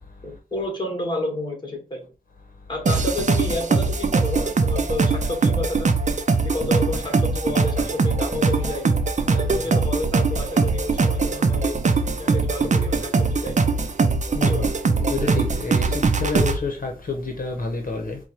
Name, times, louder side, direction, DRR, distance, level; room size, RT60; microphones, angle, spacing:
voice 1, 0.2-2.1 2.7-5.9 6.4-8.9 9.3-11.8 12.2-13.6 14.4-14.7, left 2 dB, 30° left, 1.5 m, -30 dB
sound 1, 2.9-16.6, right 4 dB, 55° right, 0.5 m, -21 dB
voice 2, 15.1-15.9 16.2-18.2, left 3 dB, 70° left, 0.9 m, -28 dB
4.5 x 2.3 x 4.3 m
wide cardioid pair, 100°, 15 cm